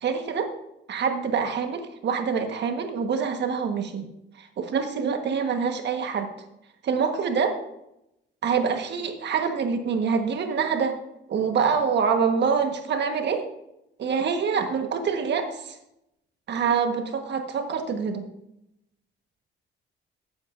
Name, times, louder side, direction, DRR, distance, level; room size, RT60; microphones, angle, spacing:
voice 1, 0.0-0.5 0.9-4.1 4.4-6.3 6.8-7.6 8.4-11.0 11.3-13.4 14.0-15.8 16.5-18.2, right 6 dB, 60° right, 6 dB, 1.4 m, -25 dB
14.0 x 8.6 x 2.6 m, 0.84 s
cardioid pair, 90°, 20 cm